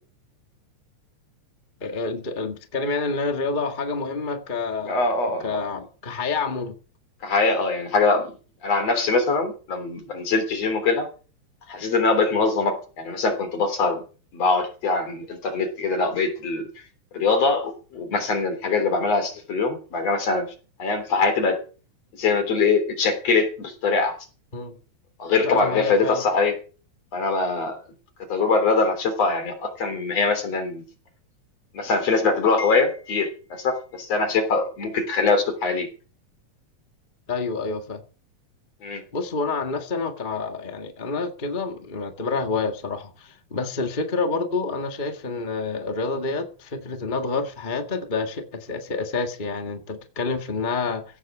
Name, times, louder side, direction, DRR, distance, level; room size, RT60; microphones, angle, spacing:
voice 1, 1.8-5.1 5.4-6.7 24.5-24.8 25.4-26.2 37.3-38.0 39.1-51.0, left 4 dB, 20° left, 1.3 m, -28 dB
voice 2, 4.8-5.5 7.2-8.3 8.6-11.1 11.7-14.0 14.3-16.7 17.1-20.5 20.8-21.6 22.1-24.1 25.2-26.6 27.1-27.8 28.3-30.8 31.7-35.9 38.8-39.0, left 4 dB, 55° left, 4.3 m, -23 dB
16.5 x 8.0 x 7.2 m
omnidirectional pair, 3.6 m